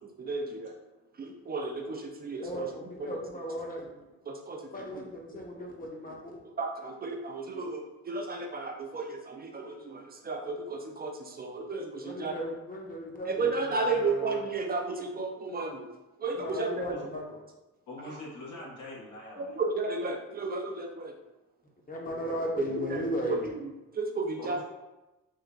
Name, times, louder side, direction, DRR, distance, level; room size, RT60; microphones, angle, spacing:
voice 1, 0.2-0.7 1.2-2.7 3.0-3.1 4.3-5.0 5.6-5.7 6.6-12.4 13.3-15.9 16.2-17.0 18.0-18.2 19.4-21.2 22.6-24.6, right 3 dB, 30° right, 3 dB, 0.4 m, -33 dB
voice 2, 2.4-4.0 4.7-6.4 12.0-14.5 16.4-17.4 21.9-23.5, equal, 30° left, -1 dB, 0.8 m, -36 dB
voice 3, 17.9-19.6 24.4-24.6, left 1 dB, 75° left, -4 dB, 1.0 m, -43 dB
3.6 x 2.2 x 3.7 m, 1.0 s
cardioid pair, 90°, 30 cm